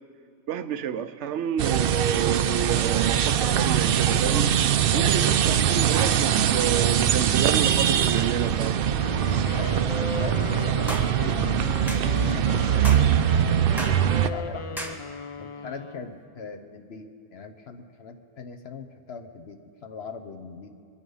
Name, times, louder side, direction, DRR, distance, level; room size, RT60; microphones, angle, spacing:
voice 1, 0.5-4.5 4.9-5.4 5.7-8.8, right 8 dB, 85° right, 11 dB, 1.0 m, -30 dB
sound 1, 1.6-14.3, right 9 dB, 65° right, 0.7 m, -22 dB
voice 2, 4.9-5.2 9.5-12.6 12.8-13.8 14.1-15.0 15.4-20.7, left 5 dB, 65° left, 6 dB, 1.1 m, -41 dB
Wind instrument woodwind instrument, 8.9-16.2, left 5 dB, 40° left, 0.5 m, -37 dB
sound 2, 10.9-11.1 11.9-12.1 12.8-13.1 13.8-14.0 14.8-15.0, equal, ahead, 1.2 m, -33 dB
23.0 x 10.0 x 5.5 m, 2.4 s
omnidirectional pair, 1.2 m